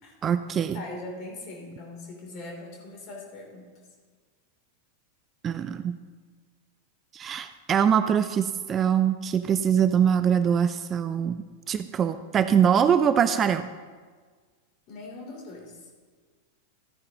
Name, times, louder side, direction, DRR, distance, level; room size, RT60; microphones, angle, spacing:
voice 1, 0.2-0.8 5.4-6.0 7.1-13.7, right 8 dB, 25° right, 11 dB, 0.4 m, -23 dB
voice 2, 0.7-3.7 14.9-15.9, left 2 dB, 40° left, -1 dB, 3.1 m, -41 dB
14.5 x 9.3 x 2.9 m, 1.5 s
figure-of-eight pair, 90°, 0 cm